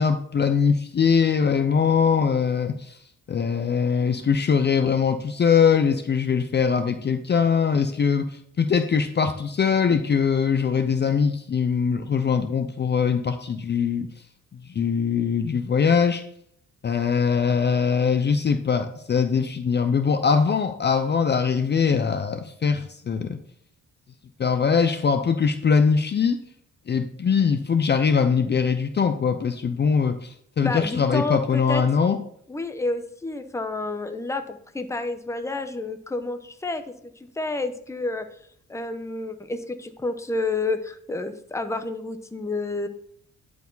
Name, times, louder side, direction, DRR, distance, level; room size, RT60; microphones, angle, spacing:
voice 1, 0.0-3.0 3.3-14.1 14.7-16.2 16.8-23.4 24.4-26.4 26.9-32.2, left 6 dB, 35° left, 9 dB, 0.7 m, -22 dB
voice 2, 30.6-31.8 32.5-36.8 37.4-38.3 38.7-42.9, left 2 dB, 10° left, 8 dB, 0.8 m, -29 dB
10.5 x 4.7 x 4.0 m, 0.67 s
cardioid pair, 90°, 30 cm